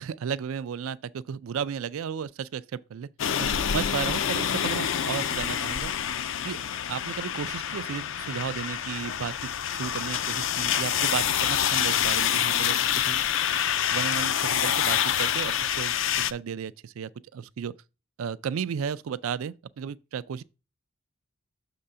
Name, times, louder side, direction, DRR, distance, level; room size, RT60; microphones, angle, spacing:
voice 1, 0.0-3.1 3.4-5.9 6.4-6.6 6.9-13.3 13.9-17.7 18.2-20.4, right 7 dB, 85° right, 0.4 m, -34 dB
sound 1, 3.2-16.3, left 9 dB, 65° left, 0.4 m, -27 dB
6.8 x 3.7 x 5.5 m
head